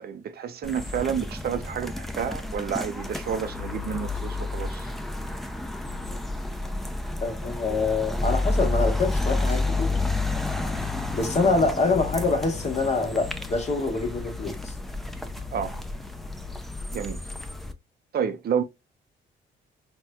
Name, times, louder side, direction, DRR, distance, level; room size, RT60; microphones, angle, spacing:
voice 1, 0.0-4.9 15.5-15.7 16.9-17.2 18.1-18.6, right 7 dB, 50° right, 0.4 m, -30 dB
sound 1, 0.6-17.7, left 2 dB, ahead, 0.4 m, -30 dB
voice 2, 7.2-10.0 11.1-14.7, left 3 dB, 35° left, 1.0 m, -25 dB
4.1 x 2.2 x 2.2 m
cardioid pair, 90°, 20 cm